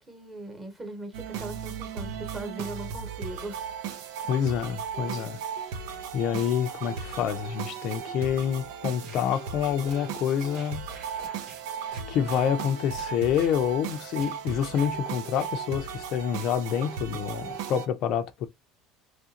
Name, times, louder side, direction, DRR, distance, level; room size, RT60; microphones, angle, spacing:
voice 1, 0.0-3.6, right 2 dB, 15° right, 1.1 m, -39 dB
sound 1, 1.1-17.9, right 7 dB, 85° right, 0.6 m, -36 dB
voice 2, 4.3-5.4 6.1-11.1 12.1-18.5, left 9 dB, 55° left, 0.5 m, -27 dB
sound 2, 9.0-9.3 9.8-10.1 10.5-11.6 11.9-12.5 13.0-13.6 14.2-14.4 14.7-14.9 15.3-15.5, right 3 dB, 60° right, 1.0 m, -47 dB
3.2 x 2.5 x 2.8 m
cardioid pair, 145°, 0 cm